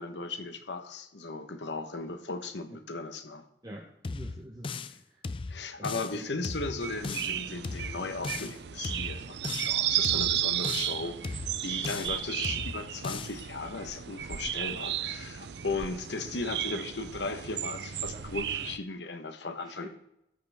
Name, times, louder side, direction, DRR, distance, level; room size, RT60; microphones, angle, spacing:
voice 1, 0.0-3.4 5.5-19.9, left 3 dB, 80° left, 8 dB, 1.2 m, -37 dB
voice 2, 3.6-5.2 5.8-6.3 18.1-18.2 19.6-19.9, right 1 dB, 20° right, -1 dB, 1.0 m, -46 dB
sound 1, 4.0-5.0 5.2-6.2 6.4-7.4 7.6-8.6 8.8-9.8 10.0-11.0 11.2-12.2 12.4-13.4, left 4 dB, 30° left, 0.4 m, -37 dB
sound 2, 6.8-18.8, right 11 dB, 70° right, 0.5 m, -33 dB
13.5 x 8.7 x 3.5 m, 0.82 s
head